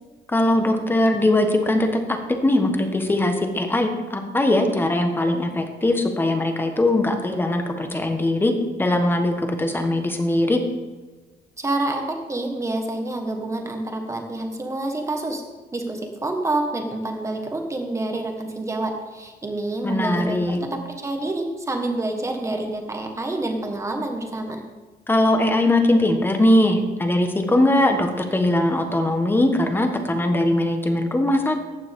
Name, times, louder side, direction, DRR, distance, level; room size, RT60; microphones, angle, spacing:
voice 1, 0.3-8.5 8.8-10.6 19.8-20.6 25.1-31.6, left 1 dB, 10° left, 5 dB, 1.2 m, -20 dB
voice 2, 11.6-15.4 15.7-24.6, right 2 dB, 15° right, 3 dB, 1.5 m, -28 dB
14.5 x 9.2 x 3.7 m, 1.3 s
cardioid pair, 145°, 18 cm